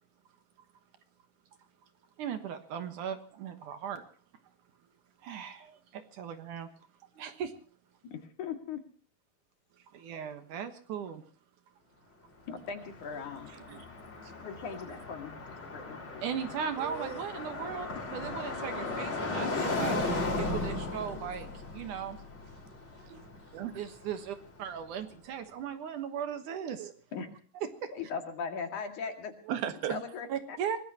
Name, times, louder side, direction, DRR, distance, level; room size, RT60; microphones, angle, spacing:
voice 1, 2.2-4.0 5.2-6.7 7.2-7.5 9.9-11.2 16.2-20.0 20.4-22.2 23.8-26.9 27.8-27.9 29.9-30.0 30.3-30.8, right 8 dB, 65° right, 2.6 m, -38 dB
voice 2, 8.1-8.8 12.5-13.5 14.4-15.4 15.7-16.6 27.1-27.3 27.9-29.3 29.9-30.6, left 6 dB, 60° left, 3.5 m, -39 dB
Car passing by, 12.5-24.5, left 2 dB, 35° left, 4.3 m, -36 dB
voice 3, 16.8-17.2 19.5-20.4 21.2-21.3 21.9-22.0 22.8-23.2 23.5-23.7 26.8-26.9 29.5-30.0, right 11 dB, 85° right, 3.3 m, -39 dB
24.0 x 19.5 x 2.9 m
omnidirectional pair, 4.2 m